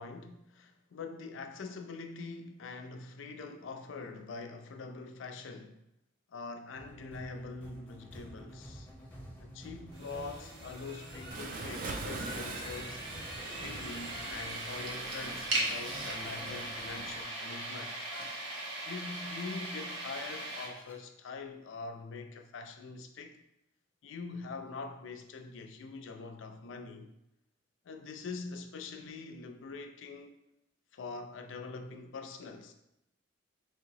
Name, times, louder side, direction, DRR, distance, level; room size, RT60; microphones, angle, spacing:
voice 1, 0.0-5.8 6.3-8.9 9.4-18.0 18.9-23.4 24.0-27.1 27.8-30.3 30.9-32.7, left 4 dB, 70° left, 0.4 m, -44 dB
sound 1, 6.7-20.9, equal, 10° left, 0.6 m, -51 dB
sound 2, 9.9-20.7, right 1 dB, 80° right, 1.0 m, -39 dB
Waves surf, 11.3-17.2, right 3 dB, 45° right, 0.3 m, -43 dB
4.4 x 2.8 x 2.7 m
head